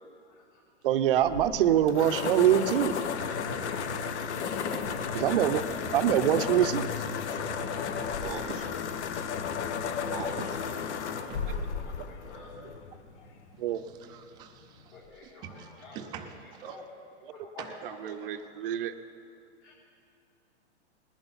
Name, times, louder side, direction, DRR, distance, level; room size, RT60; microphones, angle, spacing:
voice 1, 0.2-0.6 0.9-1.3 5.3-5.6 7.4-8.5 9.6-10.4 11.5-12.8 13.1-14.1 14.9-17.0 17.3-19.0 19.6-19.9, left 3 dB, 45° left, -6 dB, 4.2 m, -50 dB
voice 2, 0.8-2.9 5.1-5.6 5.9-6.9 8.2-8.4 10.1-10.3 13.6-13.9 18.0-18.9, right 11 dB, 50° right, 11 dB, 0.7 m, -25 dB
sound 1, 1.2-13.0, left 6 dB, 70° left, 1.1 m, -33 dB
Truck, 5.0-13.7, left 3 dB, 90° left, 1.7 m, -47 dB
voice 3, 13.7-14.9 15.2-16.7 17.6-17.7, right 8 dB, 10° right, 4 dB, 0.5 m, -45 dB
20.0 x 11.0 x 4.1 m, 2.4 s
hypercardioid pair, 160°, 35 cm